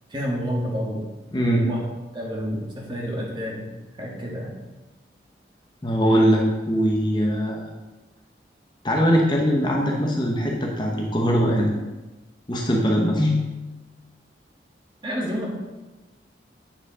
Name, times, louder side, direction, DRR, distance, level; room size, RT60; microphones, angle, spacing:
voice 1, 0.1-1.1 1.5-1.8 2.1-3.7 4.0-4.5 15.0-15.5, equal, 25° right, -3 dB, 1.8 m, -29 dB
voice 2, 1.3-1.7 5.8-7.6 8.8-11.7 12.5-13.5, equal, 25° left, -1 dB, 0.9 m, -21 dB
8.8 x 5.0 x 5.0 m, 1.1 s
head